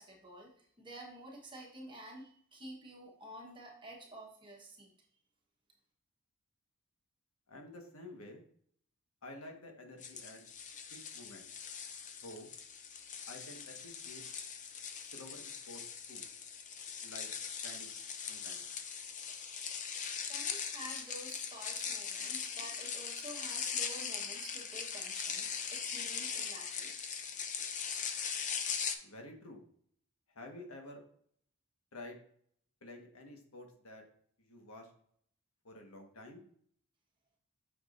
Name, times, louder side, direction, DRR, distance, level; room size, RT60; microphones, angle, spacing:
voice 1, 0.0-4.9 20.3-25.4 25.7-26.9, right 1 dB, 20° right, -1 dB, 1.1 m, -50 dB
voice 2, 7.5-8.4 9.2-10.5 10.9-11.4 12.2-12.5 13.3-14.2 15.1-15.8 16.1-16.2 17.0-17.3 17.6-17.9 18.3-18.6 29.0-29.6 30.3-31.0 31.9-32.2 32.8-34.0 34.5-34.9 35.6-36.4, left 1 dB, 70° left, 3 dB, 1.4 m, -50 dB
sound 1, 10.0-29.0, left 6 dB, 35° left, 0.6 m, -40 dB
8.0 x 6.1 x 2.5 m, 0.62 s
head